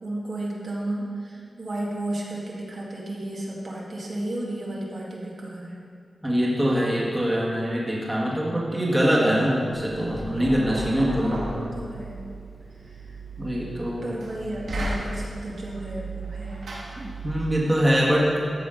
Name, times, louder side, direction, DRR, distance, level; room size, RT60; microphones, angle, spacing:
voice 1, 0.0-5.8 11.2-12.2 12.9-13.2 14.0-16.6, right 1 dB, 55° right, -5 dB, 1.9 m, -33 dB
voice 2, 6.2-11.4 13.4-14.0 17.0-18.3, equal, 10° right, -5 dB, 1.9 m, -23 dB
Knock, 9.7-17.6, right 2 dB, 90° right, 2.1 m, -35 dB
13.5 x 6.0 x 5.2 m, 2.3 s
wide cardioid pair, 115°, 0 cm